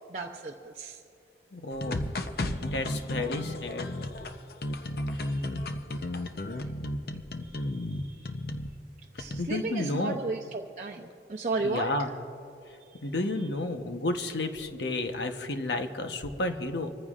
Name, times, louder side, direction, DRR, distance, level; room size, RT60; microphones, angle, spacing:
voice 1, 0.1-1.0 5.1-5.6 7.4-8.5 9.2-12.1 12.9-13.0, right 3 dB, 45° right, -1 dB, 0.6 m, -35 dB
voice 2, 1.5-2.0 2.6-3.9 5.1-5.2 9.4-10.2 11.6-12.1 13.0-16.9, left 2 dB, 80° left, 6 dB, 1.0 m, -31 dB
sound 1, 1.7-8.7 9.2-9.4, left 1 dB, 60° left, 0.7 m, -33 dB
26.0 x 14.5 x 2.5 m, 2.6 s
head